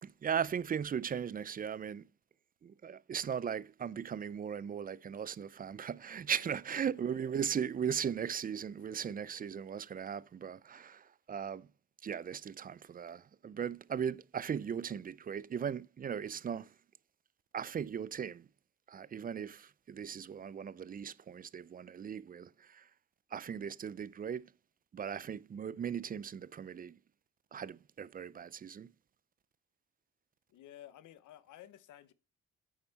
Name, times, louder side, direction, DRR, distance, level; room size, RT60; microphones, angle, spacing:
voice 1, 0.0-2.1 2.6-11.7 12.0-16.7 17.5-18.5 18.9-22.9 23.3-24.5 24.9-27.0 27.5-28.9, right 8 dB, 30° right, 0.4 m, -38 dB
voice 2, 6.4-7.0 8.8-9.2 30.5-32.1, left 12 dB, 80° left, 0.9 m, -55 dB
8.7 x 5.3 x 4.0 m
cardioid pair, 90°, 30 cm